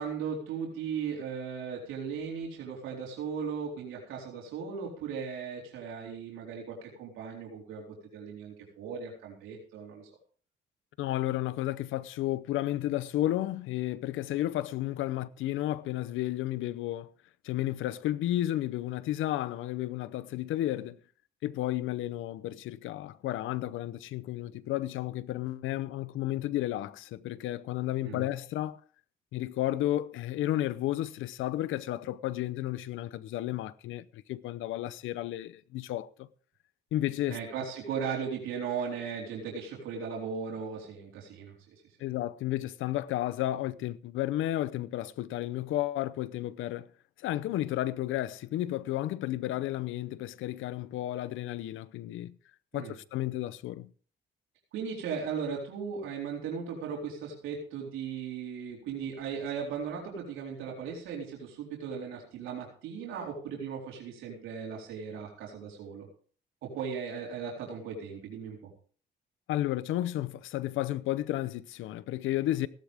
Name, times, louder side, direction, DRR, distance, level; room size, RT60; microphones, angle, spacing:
voice 1, 0.0-10.1 28.0-28.2 37.3-41.7 52.7-52.9 54.7-66.1 66.6-68.7, right 6 dB, 90° right, 4.0 m, -37 dB
voice 2, 11.0-17.1 17.4-21.0 21.4-28.8 29.3-36.3 36.9-37.4 42.0-46.9 47.2-52.3 52.7-53.9 69.5-72.7, left 14 dB, 85° left, 0.7 m, -32 dB
17.0 x 12.0 x 3.5 m
cardioid pair, 90°, 20 cm